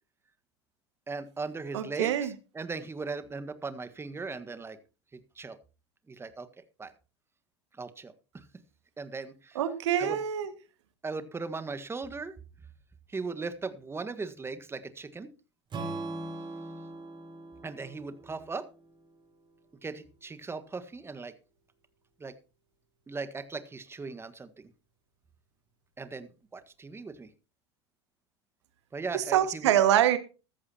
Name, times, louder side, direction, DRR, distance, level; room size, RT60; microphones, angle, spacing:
voice 1, 1.1-4.8 5.4-5.6 6.1-6.5 6.8-6.9 7.8-8.4 9.0-9.6 10.0-10.2 11.0-12.4 13.1-15.3 17.6-18.7 19.8-21.3 22.2-22.3 23.1-24.7 26.0-27.3 28.9-29.7, right 4 dB, 15° right, 12 dB, 1.5 m, -38 dB
voice 2, 1.7-2.3 9.6-10.5 29.1-30.2, right 11 dB, 80° right, 11 dB, 1.9 m, -25 dB
Strum, 15.7-19.9, right 2 dB, 30° right, 5.2 m, -41 dB
14.5 x 13.5 x 2.9 m, 0.32 s
hypercardioid pair, 90°, 15 cm